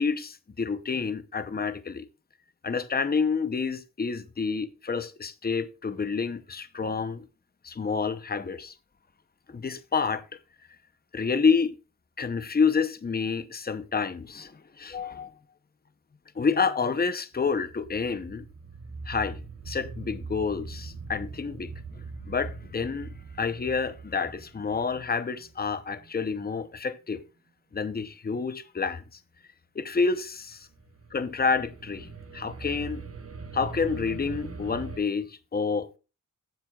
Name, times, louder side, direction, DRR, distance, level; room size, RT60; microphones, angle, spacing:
voice 1, 0.0-2.1 2.6-7.3 7.6-8.7 9.5-10.2 11.1-11.7 12.2-15.3 16.4-18.4 19.1-19.4 19.7-21.7 22.3-27.2 27.7-29.0 29.7-30.6 31.1-33.0 33.5-35.9, left 5 dB, 25° left, 0.8 m, -28 dB
sound 1, 17.3-26.1 30.5-35.0, right 4 dB, 40° right, 1.2 m, -42 dB
15.0 x 7.7 x 2.4 m
wide cardioid pair, 105°, 34 cm